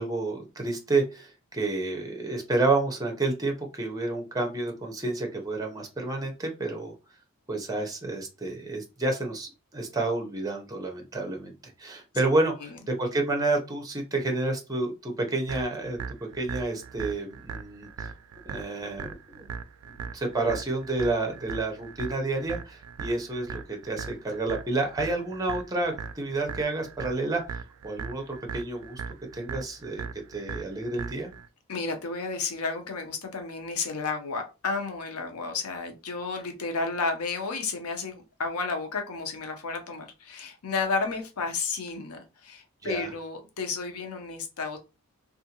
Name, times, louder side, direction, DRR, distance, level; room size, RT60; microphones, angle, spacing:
voice 1, 0.0-6.9 7.5-18.1 18.5-19.5 20.1-29.0 29.3-31.3 42.8-43.1, right 2 dB, 15° right, 3 dB, 0.7 m, -30 dB
sound 1, 15.5-31.5, right 6 dB, 75° right, 0.3 m, -39 dB
voice 2, 31.7-44.8, left 4 dB, 85° left, 5 dB, 0.6 m, -32 dB
2.6 x 2.4 x 2.8 m, 0.29 s
head